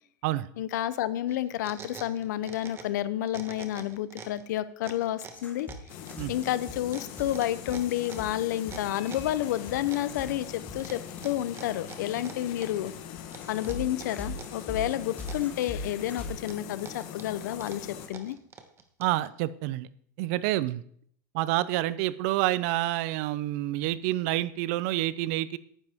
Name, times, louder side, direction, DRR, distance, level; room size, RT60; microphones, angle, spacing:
voice 1, 0.6-5.7 6.3-12.9 13.5-18.4, left 13 dB, 80° left, 16 dB, 0.7 m, -30 dB
sound 1, 1.3-3.0 3.3-4.4 4.8-9.4 9.9-10.5 10.8-12.9 13.3-14.6 14.9-15.9 16.3-19.3, right 6 dB, 25° right, 1.3 m, -46 dB
sound 2, 5.3-10.7 11.1-11.2 12.1-16.3, left 2 dB, 15° left, 2.0 m, -39 dB
sound 3, 5.9-18.1, left 9 dB, 55° left, 1.4 m, -42 dB
voice 2, 19.0-19.9 20.2-20.8 21.3-25.6, right 15 dB, 60° right, 18 dB, 0.6 m, -28 dB
10.5 x 9.8 x 3.6 m, 0.62 s
supercardioid pair, 135°, 9 cm